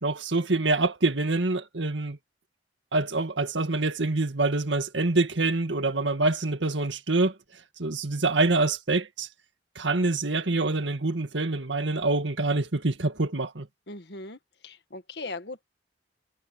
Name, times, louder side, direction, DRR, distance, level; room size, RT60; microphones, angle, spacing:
voice 1, 0.0-2.2 2.9-7.3 7.8-9.3 9.8-13.7, right 2 dB, 90° right, 1.9 m, -26 dB
voice 2, 13.9-15.6, left 2 dB, 65° left, 1.8 m, -39 dB
head